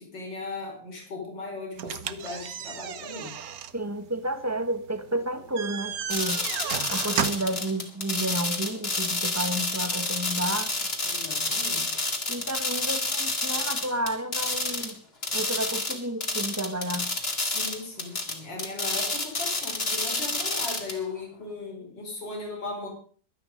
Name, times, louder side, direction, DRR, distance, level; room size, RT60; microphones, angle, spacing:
voice 1, 0.0-3.3 11.0-12.0 17.4-22.9, left 3 dB, 75° left, 5.4 m, -37 dB
sound 1, 1.8-7.6, right 8 dB, 60° right, 1.4 m, -34 dB
voice 2, 3.7-6.4 6.9-10.7 12.3-15.0 15.3-17.1, right 1 dB, 10° right, 1.3 m, -31 dB
sound 2, 6.1-14.9 15.2-21.0, left 2 dB, 30° left, 2.7 m, -29 dB
22.5 x 9.3 x 5.2 m
omnidirectional pair, 2.0 m